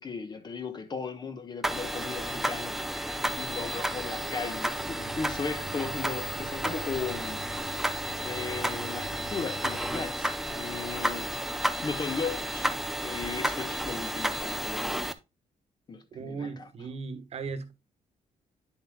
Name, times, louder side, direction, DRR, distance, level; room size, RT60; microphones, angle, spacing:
voice 1, 0.0-7.5 8.2-11.3 11.8-12.7 13.0-15.1 15.9-16.5, left 5 dB, 30° left, 1.1 m, -36 dB
sound 1, 1.6-15.1, right 1 dB, ahead, 0.6 m, -32 dB
sound 2, 4.8-10.0, right 6 dB, 75° right, 1.5 m, -46 dB
voice 2, 16.1-17.7, right 4 dB, 50° right, 1.3 m, -37 dB
10.0 x 7.8 x 2.2 m
wide cardioid pair, 165°, 14 cm